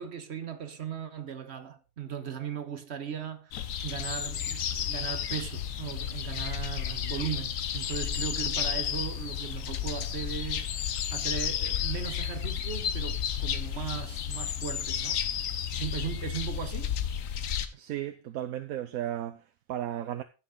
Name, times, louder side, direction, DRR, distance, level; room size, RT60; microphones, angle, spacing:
voice 1, 0.0-15.2 15.7-17.0, right 8 dB, 55° right, 1.3 m, -38 dB
sound 1, 3.5-17.7, left 9 dB, 70° left, 1.2 m, -32 dB
voice 2, 17.7-20.2, right 11 dB, 90° right, 1.1 m, -35 dB
15.5 x 6.0 x 3.8 m
omnidirectional pair, 1.4 m